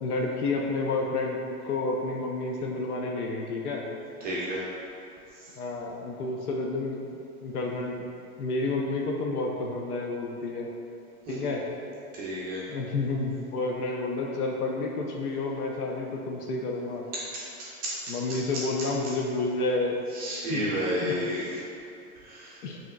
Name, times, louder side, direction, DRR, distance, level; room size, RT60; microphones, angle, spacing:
voice 1, 0.0-3.8 5.6-7.0 7.4-8.1 8.4-10.7 11.3-11.6 12.7-17.1 18.1-20.0 20.5-21.1 22.6-22.8, left 3 dB, 85° left, -1 dB, 0.6 m, -30 dB
voice 2, 4.2-4.6 5.4-5.5 11.3-11.5 12.1-12.6 17.3-17.9 20.1-21.5 22.2-22.6, equal, 20° right, -7 dB, 0.4 m, -32 dB
5.4 x 3.0 x 2.2 m, 2.7 s
hypercardioid pair, 120°, 44 cm